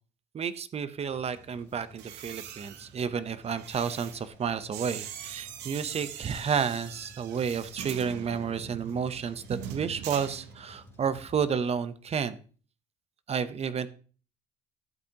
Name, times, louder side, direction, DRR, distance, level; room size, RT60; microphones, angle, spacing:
voice 1, 0.3-12.4 13.3-13.9, right 6 dB, 35° right, 13 dB, 0.8 m, -31 dB
Truck, 1.1-12.3, left 1 dB, 15° left, 2.7 m, -55 dB
sound 1, 1.9-11.0 11.2-11.6, right 10 dB, 90° right, 0.9 m, -43 dB
12.0 x 8.2 x 2.9 m, 0.38 s
cardioid pair, 110°, 17 cm